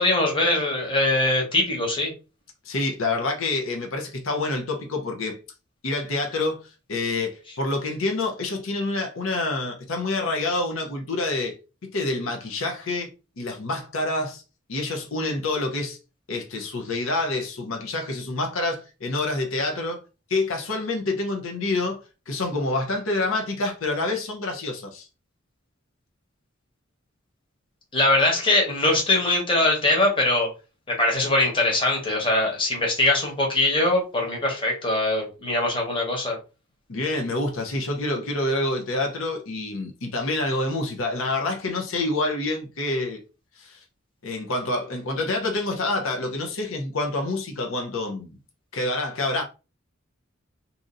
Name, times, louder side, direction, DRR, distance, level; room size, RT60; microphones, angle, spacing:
voice 1, 0.0-2.1 27.9-30.5 30.9-36.4, left 2 dB, 25° left, 1.2 m, -22 dB
voice 2, 2.6-5.4 5.8-14.4 14.7-16.0 16.3-20.0 20.3-25.1 36.9-43.2 43.6-43.8 44.2-48.4 48.7-49.4, left 2 dB, 80° left, 0.7 m, -27 dB
2.8 x 2.5 x 3.9 m
head